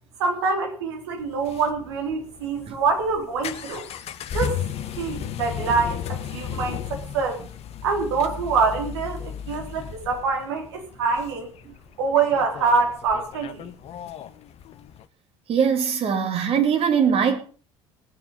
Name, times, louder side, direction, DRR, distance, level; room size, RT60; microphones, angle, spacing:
voice 1, 0.2-3.8 4.3-4.6 5.0-7.4 7.8-11.5 12.0-13.7, right 4 dB, 70° right, 3.8 m, -25 dB
sound 1, 1.2-15.0, left 9 dB, 45° left, 1.3 m, -35 dB
voice 2, 15.5-17.4, right 7 dB, 45° right, 2.9 m, -21 dB
19.0 x 9.5 x 5.5 m
figure-of-eight pair, 60°, 14 cm